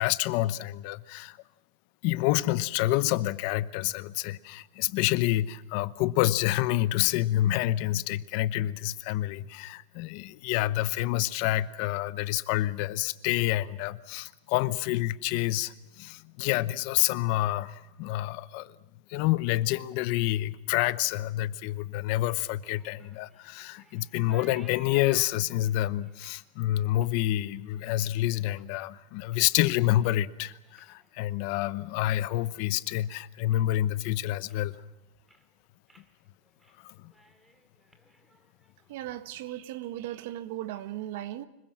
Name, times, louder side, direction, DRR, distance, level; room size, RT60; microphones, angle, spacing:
voice 1, 0.0-1.4 2.0-18.7 19.1-34.8 36.8-36.9, left 15 dB, 45° left, 0.8 m, -28 dB
sound 1, 22.2-28.9 29.2-29.7 30.0-32.4 32.7-33.2 33.5-33.6 34.0-34.8 35.1-35.5 35.9-36.1 36.4-36.8 37.0-38.9, right 1 dB, 5° right, 2.2 m, -57 dB
voice 2, 38.9-41.5, right 13 dB, 55° right, 1.6 m, -37 dB
25.5 x 22.0 x 7.5 m
supercardioid pair, 175°, 0 cm